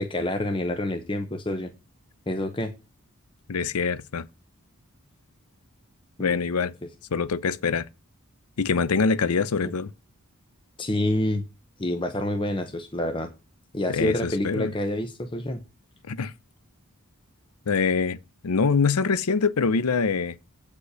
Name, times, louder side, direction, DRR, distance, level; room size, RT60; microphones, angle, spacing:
voice 1, 0.0-1.7 2.3-2.7 6.2-6.4 6.8-6.9 9.6-9.7 10.8-11.4 11.8-13.3 13.7-15.6, left 1 dB, 25° left, 0.8 m, -27 dB
voice 2, 3.5-4.3 6.2-6.7 7.1-7.9 8.6-9.9 13.9-14.7 16.1-16.3 17.7-18.2 18.4-20.4, left 5 dB, 90° left, 0.6 m, -24 dB
8.2 x 5.3 x 6.7 m
head